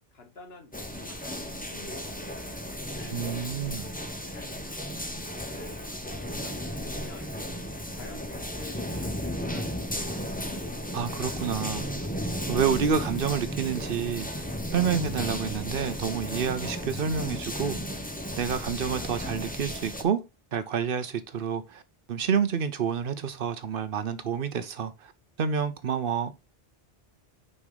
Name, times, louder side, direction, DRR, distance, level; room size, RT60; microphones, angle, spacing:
voice 1, 0.1-2.3 2.9-7.3 7.9-10.4, left 3 dB, 75° left, 1.8 m, -50 dB
sound 1, 0.7-20.0, equal, 10° left, 0.9 m, -34 dB
voice 2, 3.1-3.9 10.9-11.9 12.5-18.0 18.4-20.2 20.5-21.8 22.1-25.1 25.4-26.3, right 7 dB, 65° right, 0.9 m, -29 dB
5.9 x 5.3 x 3.9 m
omnidirectional pair, 1.0 m